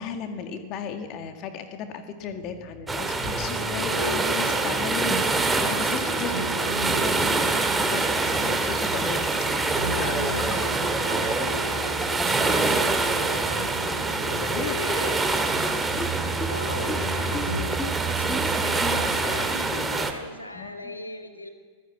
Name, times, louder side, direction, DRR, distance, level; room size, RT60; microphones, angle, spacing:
voice 1, 0.0-6.4 6.9-10.6 14.4-14.8 15.4-15.5 15.9-16.1 20.5-20.9, left 6 dB, 40° left, 7 dB, 1.9 m, -36 dB
sound 1, 2.2-19.4, equal, 60° right, 4.6 m, -37 dB
sound 2, 2.9-20.1, right 3 dB, 10° right, 2.1 m, -25 dB
voice 2, 6.3-6.8 8.2-8.4 10.0-13.7 14.6-15.3 16.5-21.5, left 2 dB, 80° left, 5 dB, 2.3 m, -38 dB
sound 3, 8.7-13.9 14.2-14.3 14.5-14.6 14.9-15.0 15.3-15.4 15.6-15.7 16.0-16.1 16.4-16.5 16.9-17.0 17.3-17.4 17.8-17.9 18.3-18.4 18.8-18.9, left 3 dB, 10° left, 2.5 m, -34 dB
24.0 x 15.0 x 8.1 m, 1.5 s
figure-of-eight pair, 90°, 0 cm